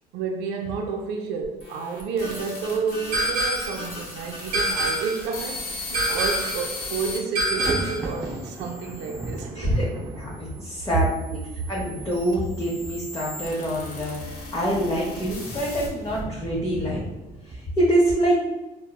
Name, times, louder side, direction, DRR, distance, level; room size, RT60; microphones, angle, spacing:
voice 1, 0.1-9.8, right 5 dB, 85° right, 2 dB, 0.4 m, -30 dB
sound 1, 1.4-7.2 7.8-9.4 10.2-16.2, left 2 dB, 65° left, 0.8 m, -38 dB
sound 2, 3.1-3.9 4.5-5.3 5.9-6.7 7.3-8.1, right 1 dB, 70° right, 0.8 m, -25 dB
Thunder, 6.4-6.5 6.7-17.6, right 2 dB, 15° right, 0.4 m, -38 dB
voice 2, 9.5-9.9 10.1-17.0 17.4-18.3, right 1 dB, 20° left, -6 dB, 0.7 m, -25 dB
3.7 x 2.0 x 2.2 m, 1.0 s
cardioid pair, 110°, 17 cm